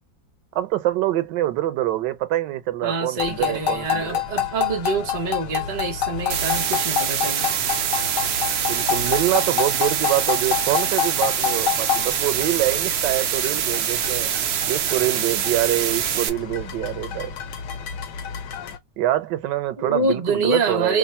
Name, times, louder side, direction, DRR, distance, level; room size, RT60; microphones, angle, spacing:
voice 1, 0.5-4.2 8.7-14.3 14.7-17.4 19.0-21.0, right 14 dB, 90° right, 1.3 m, -25 dB
voice 2, 2.8-7.5 19.8-21.0, right 3 dB, 35° right, 0.7 m, -26 dB
sound 1, 3.2-18.8, left 10 dB, 80° left, 1.3 m, -28 dB
sound 2, 6.3-16.3, right 9 dB, 70° right, 1.0 m, -24 dB
3.1 x 2.0 x 4.2 m
omnidirectional pair, 1.8 m